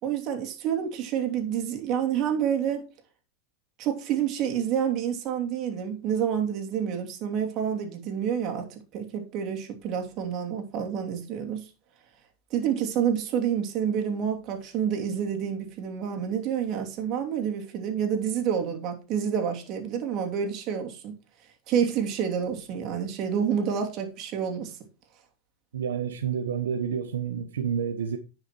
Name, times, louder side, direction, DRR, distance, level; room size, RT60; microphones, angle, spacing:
voice 1, 0.0-2.9 3.8-8.7 8.9-11.6 12.5-21.1 21.7-24.8, right 8 dB, 45° right, 2.9 m, -28 dB
voice 2, 25.7-28.2, right 7 dB, 85° right, 1.0 m, -29 dB
10.5 x 5.9 x 4.5 m
hypercardioid pair, 110°, 0 cm